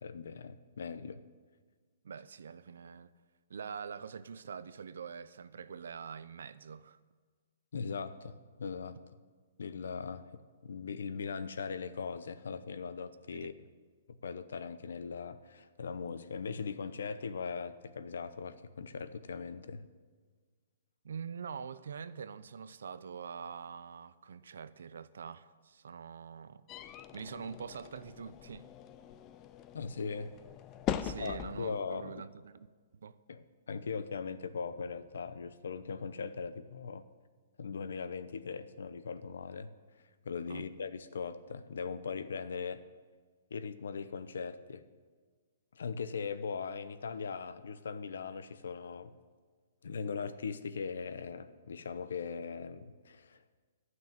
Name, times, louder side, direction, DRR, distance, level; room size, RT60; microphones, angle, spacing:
voice 1, 0.0-1.2 7.7-9.0 9.6-13.5 14.1-19.9 29.7-30.3 31.2-32.1 33.3-37.1 37.6-39.7 40.2-42.8 43.5-44.8 45.7-49.1 49.8-53.6, left 5 dB, 85° left, 0.8 m, -40 dB
voice 2, 2.0-3.1 3.5-7.0 13.3-13.5 21.0-26.6 27.1-28.7 31.0-32.7 32.9-33.2 40.5-40.7, right 6 dB, 85° right, 0.6 m, -44 dB
sound 1, 26.7-31.8, left 10 dB, 20° left, 0.4 m, -41 dB
12.0 x 6.3 x 9.0 m
hypercardioid pair, 170°, 0 cm